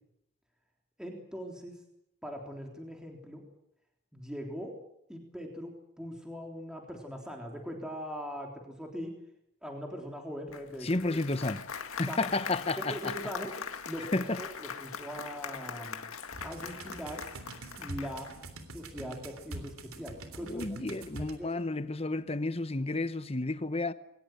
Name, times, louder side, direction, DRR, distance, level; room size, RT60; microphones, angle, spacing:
voice 1, 1.0-1.8 2.2-3.4 4.1-4.7 5.1-9.1 9.6-11.2 12.1-12.3 12.8-16.0 16.4-17.2 17.8-18.3 18.7-20.7 21.2-21.6, equal, 5° right, 3.5 m, -41 dB
Applause, 10.5-18.4, left 6 dB, 90° left, 1.9 m, -41 dB
voice 2, 10.8-11.6 12.0-13.1 14.1-14.4 20.4-23.9, left 2 dB, 30° left, 1.0 m, -31 dB
sound 1, 16.3-21.4, right 2 dB, 85° right, 3.4 m, -44 dB
21.5 x 20.0 x 9.1 m
head